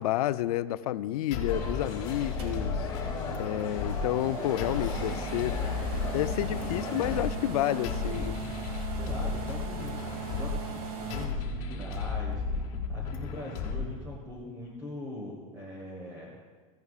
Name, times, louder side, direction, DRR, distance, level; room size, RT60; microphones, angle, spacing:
voice 1, 0.0-2.7 3.4-5.6 6.1-8.4, left 14 dB, 80° left, 15 dB, 0.4 m, -30 dB
sound 1, 1.3-14.3, left 4 dB, 45° left, 1.4 m, -34 dB
sound 2, 1.5-7.2, left 3 dB, 20° left, 2.2 m, -38 dB
sound 3, 2.4-11.2, right 5 dB, 70° right, 2.0 m, -40 dB
voice 2, 7.1-8.4 8.9-16.4, left 1 dB, 15° right, -3 dB, 1.3 m, -42 dB
15.0 x 10.5 x 2.4 m, 1.4 s
supercardioid pair, 165°, 19 cm